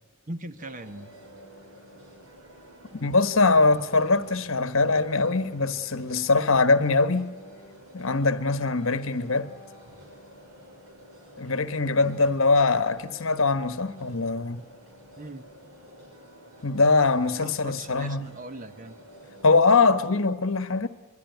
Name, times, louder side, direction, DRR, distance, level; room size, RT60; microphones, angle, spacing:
voice 1, 0.3-1.1 15.2-15.5 17.4-19.0, right 2 dB, 40° right, 1.2 m, -40 dB
sound 1, 0.6-19.6, equal, 80° right, 5.5 m, -49 dB
voice 2, 2.9-7.3 7.9-9.5 11.4-14.6 16.6-18.3 19.4-20.9, left 3 dB, 70° left, 1.3 m, -22 dB
24.5 x 23.0 x 9.3 m
head